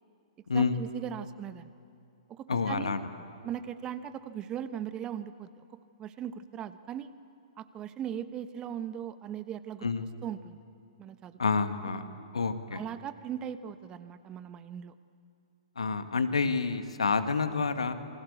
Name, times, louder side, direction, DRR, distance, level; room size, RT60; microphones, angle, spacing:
voice 1, 0.5-1.7 2.3-3.0 3.4-5.6 6.0-7.1 7.6-9.9 10.2-10.6 11.0-11.4 11.8-11.9 12.7-14.9, right 9 dB, 25° right, 12 dB, 1.1 m, -39 dB
voice 2, 2.5-3.1 9.8-10.1 11.4-12.0 12.3-12.8 15.8-17.9, left 4 dB, 80° left, 8 dB, 2.0 m, -28 dB
28.0 x 24.5 x 8.4 m, 2.6 s
figure-of-eight pair, 115°, 3 cm